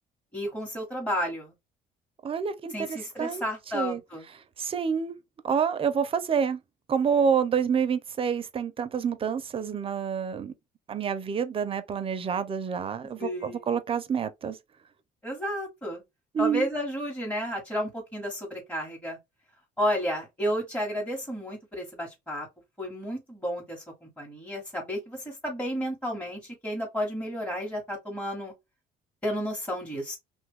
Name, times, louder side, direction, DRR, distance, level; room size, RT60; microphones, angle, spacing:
voice 1, 0.3-1.5 2.7-4.3 13.2-13.6 15.2-16.0 16.4-19.2 19.8-22.5 22.8-28.5 29.2-30.2, equal, 10° left, 1.1 m, -32 dB
voice 2, 2.2-3.4 3.7-4.0 4.3-5.2 5.4-6.6 6.9-10.5 10.9-14.6 16.3-16.7, right 7 dB, 35° right, 0.5 m, -28 dB
3.0 x 2.3 x 3.5 m
cardioid pair, 110°, 17 cm